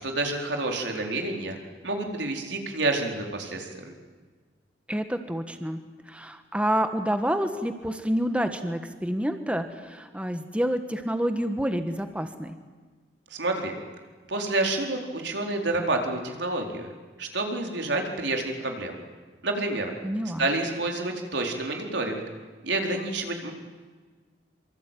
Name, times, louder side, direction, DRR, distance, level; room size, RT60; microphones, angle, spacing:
voice 1, 0.0-1.6 1.8-3.9 13.3-13.8 14.3-16.9 17.2-18.9 19.4-19.9 20.4-22.2 22.6-23.5, right 2 dB, 80° right, 2 dB, 4.3 m, -28 dB
voice 2, 4.9-12.6 20.0-20.5, equal, 5° right, 7 dB, 1.4 m, -28 dB
26.0 x 25.0 x 9.2 m, 1.4 s
head